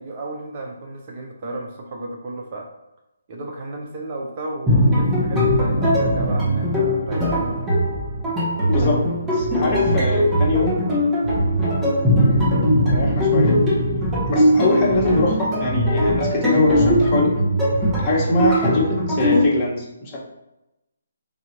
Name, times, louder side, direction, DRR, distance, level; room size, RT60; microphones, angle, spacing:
voice 1, 0.0-2.7 3.3-7.6 12.3-12.7, right 2 dB, 35° right, 0 dB, 0.7 m, -33 dB
sound 1, 4.7-19.4, equal, 10° right, 1.4 m, -20 dB
voice 2, 8.7-9.0 9.3-10.7 12.8-13.5 14.3-17.3 18.0-20.2, left 2 dB, 25° left, -5 dB, 1.5 m, -22 dB
4.0 x 2.9 x 4.5 m, 0.92 s
hypercardioid pair, 150°, 0 cm